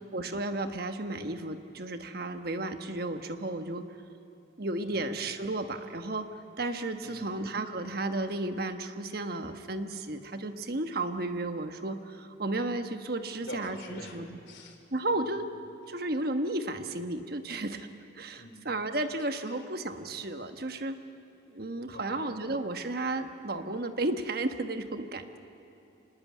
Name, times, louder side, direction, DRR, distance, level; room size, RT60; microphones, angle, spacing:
voice 1, 0.1-3.8 4.6-14.4 14.9-15.5 15.9-17.9 18.1-21.0 21.5-25.4, right 2 dB, 50° right, 7 dB, 1.3 m, -33 dB
voice 2, 13.4-14.8 18.4-18.6 21.9-22.3, left 1 dB, 65° left, 5 dB, 3.0 m, -44 dB
25.5 x 20.0 x 8.4 m, 2.8 s
head